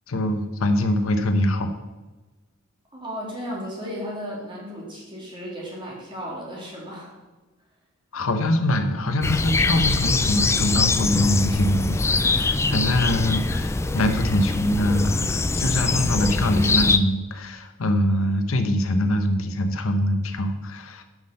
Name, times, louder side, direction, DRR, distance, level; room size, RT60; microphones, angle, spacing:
voice 1, 0.1-1.7 8.1-21.0, left 1 dB, 80° left, 8 dB, 0.8 m, -23 dB
voice 2, 2.9-7.2, equal, 25° right, -4 dB, 2.5 m, -34 dB
sound 1, 9.2-17.0, left 3 dB, 15° left, 0.3 m, -23 dB
6.2 x 5.6 x 6.4 m, 1.2 s
head